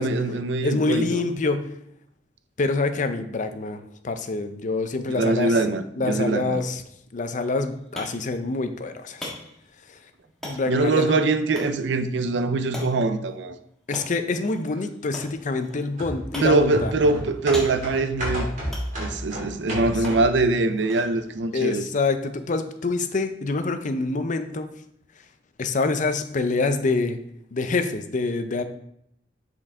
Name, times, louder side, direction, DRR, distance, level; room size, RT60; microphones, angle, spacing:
voice 1, 0.0-1.2 5.1-6.6 10.7-13.6 16.4-18.5 19.0-21.8, right 3 dB, 75° right, 0.5 m, -23 dB
voice 2, 0.6-1.7 2.6-5.5 6.0-6.8 7.1-9.3 10.4-11.1 13.9-16.9 21.5-24.7 25.6-27.2 27.5-28.6, left 3 dB, 45° left, 0.5 m, -26 dB
sound 1, 7.4-23.0, equal, 5° left, 1.6 m, -44 dB
sound 2, 16.0-20.4 20.8-20.9, equal, 45° right, 2.5 m, -31 dB
7.5 x 4.6 x 3.6 m
head